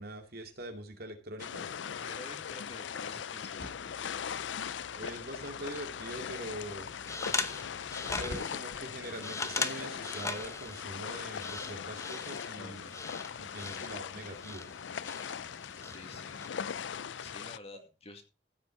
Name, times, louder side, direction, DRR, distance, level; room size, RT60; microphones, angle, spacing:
voice 1, 0.0-1.6 4.9-6.9 8.2-12.9 13.4-14.7 17.7-17.8, right 1 dB, 60° right, 5 dB, 2.4 m, -43 dB
sound 1, 1.4-17.6, left 7 dB, 90° left, 0.5 m, -40 dB
voice 2, 2.0-3.9 12.6-13.0 13.7-14.0 15.8-16.4 16.8-18.2, left 2 dB, 35° left, 5 dB, 2.1 m, -50 dB
sound 2, 3.6-8.4 8.7-8.8 9.5-9.6 10.1-10.2 10.4-10.7 11.9-12.0, left 2 dB, 70° left, 5.5 m, -49 dB
sound 3, 6.6-16.5, left 3 dB, 15° left, 0.9 m, -40 dB
15.0 x 8.2 x 4.0 m, 0.29 s
head